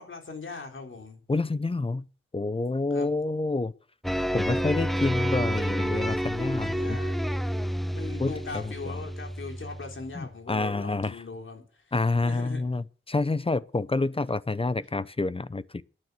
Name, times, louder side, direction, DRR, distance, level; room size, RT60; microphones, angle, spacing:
voice 1, 0.0-1.2 2.9-3.1 6.5-7.2 7.7-11.9 12.2-12.6, left 3 dB, 70° left, 4.0 m, -40 dB
voice 2, 1.3-2.0 2.3-3.7 4.3-7.0 8.2-9.0 10.1-11.2 11.9-15.8, left 3 dB, 25° left, 0.7 m, -28 dB
sound 1, 4.0-10.3, equal, ahead, 0.9 m, -29 dB
12.0 x 9.6 x 8.4 m
wide cardioid pair, 90°, 21 cm